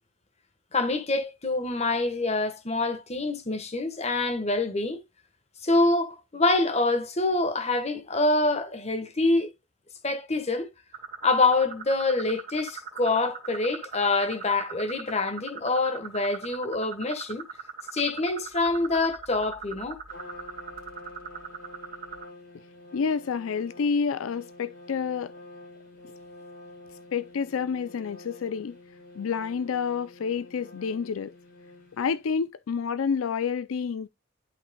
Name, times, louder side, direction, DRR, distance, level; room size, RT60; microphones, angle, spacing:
voice 1, 0.7-5.0 5.6-9.5 10.0-10.7 11.2-17.4 17.9-20.0, left 2 dB, 30° left, 1.3 m, -26 dB
sound 1, 10.9-22.2, right 8 dB, 45° right, 1.7 m, -39 dB
Trumpet, 20.1-32.2, left 2 dB, 65° left, 6.3 m, -48 dB
voice 2, 22.9-25.3 27.1-28.8 29.2-31.3 32.0-34.1, left 6 dB, 85° left, 0.4 m, -29 dB
11.0 x 5.7 x 2.2 m
head